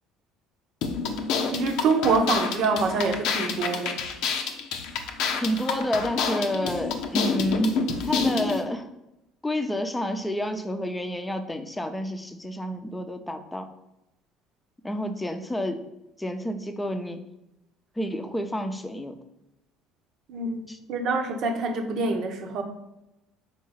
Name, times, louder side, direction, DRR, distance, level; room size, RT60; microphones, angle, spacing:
sound 1, 0.8-8.6, left 5 dB, 60° left, 0.7 m, -28 dB
voice 1, 1.5-4.0 20.3-20.6 20.9-22.6, right 3 dB, 55° right, 5 dB, 0.9 m, -25 dB
voice 2, 5.3-8.9 9.4-13.7 14.8-15.8 16.2-17.2 18.0-19.2 20.7-20.8, equal, 10° left, 7 dB, 0.8 m, -29 dB
4.7 x 4.5 x 5.6 m, 0.90 s
figure-of-eight pair, 55°, 0 cm